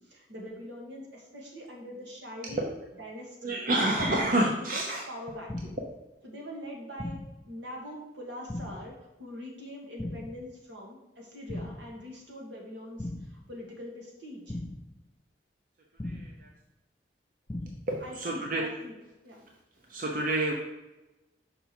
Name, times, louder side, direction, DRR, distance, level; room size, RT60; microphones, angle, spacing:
voice 1, 0.0-3.6 4.1-5.8 6.2-7.2 7.5-8.9 9.2-14.6 18.0-18.9 19.2-19.4, left 1 dB, 80° right, -1 dB, 1.9 m, -43 dB
voice 2, 3.4-5.0 16.0-16.5 17.9-18.6 19.9-20.6, right 1 dB, 50° right, 0 dB, 0.8 m, -28 dB
sound 1, 4.0-4.5 5.5-6.0 7.0-7.5 8.5-9.0 10.0-10.5 11.5-12.0 13.0-13.5 14.5-15.0 16.0-16.5 17.5-18.0, left 1 dB, 20° left, 0.4 m, -38 dB
5.8 x 5.4 x 4.4 m, 1.0 s
head